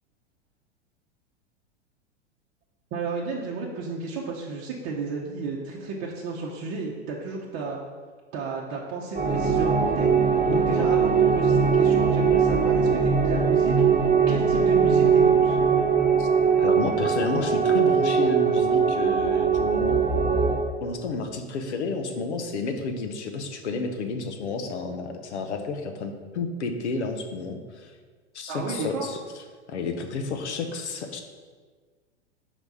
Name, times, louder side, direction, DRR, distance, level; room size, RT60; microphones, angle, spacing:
voice 1, 2.9-7.8 8.3-10.1 10.5-15.6 28.5-29.0, right 4 dB, 40° right, -3 dB, 0.8 m, -33 dB
sound 1, 9.1-20.6, right 6 dB, 20° right, 1.3 m, -21 dB
voice 2, 16.6-20.1 20.8-27.9 28.3-29.2 29.7-31.2, left 3 dB, 75° left, 5 dB, 0.8 m, -31 dB
5.0 x 3.4 x 5.5 m, 1.5 s
hypercardioid pair, 95°, 34 cm